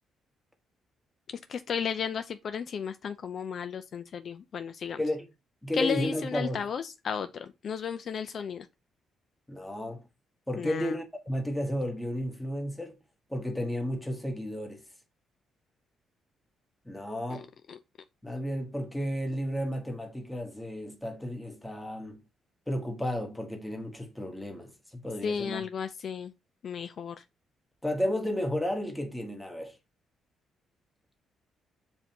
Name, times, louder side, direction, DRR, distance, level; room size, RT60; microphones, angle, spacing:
voice 1, 1.5-5.0 5.7-8.7 10.6-10.9 17.3-17.4 17.7-17.8 25.2-26.3 26.6-27.2, left 7 dB, 55° left, 0.4 m, -34 dB
voice 2, 5.0-5.3 5.6-6.6 9.5-10.0 10.5-13.0 13.3-14.8 16.8-17.5 18.2-22.2 22.7-25.6 27.8-29.8, equal, 5° left, 1.2 m, -33 dB
7.1 x 2.7 x 2.8 m
cardioid pair, 90°, 0 cm